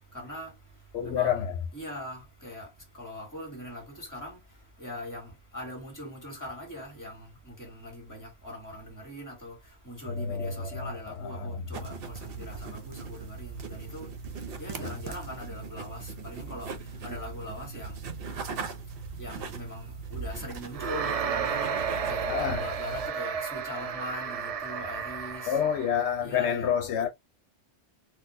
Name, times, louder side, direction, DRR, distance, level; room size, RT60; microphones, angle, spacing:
voice 1, 0.1-0.5 1.0-1.4 1.7-2.7 3.0-4.4 4.8-9.5 9.8-14.1 14.6-16.7 17.0-18.0 19.2-21.7 22.1-25.6 26.2-26.7, left 1 dB, 15° left, 1.5 m, -41 dB
voice 2, 0.9-1.5 10.1-10.9 11.4-11.6 22.3-22.6 25.5-27.1, left 8 dB, 75° left, 0.8 m, -28 dB
sound 1, 11.7-23.1, right 4 dB, 60° right, 0.9 m, -39 dB
sound 2, 20.7-26.1, right 6 dB, 75° right, 0.3 m, -32 dB
4.1 x 2.3 x 2.6 m
omnidirectional pair, 1.2 m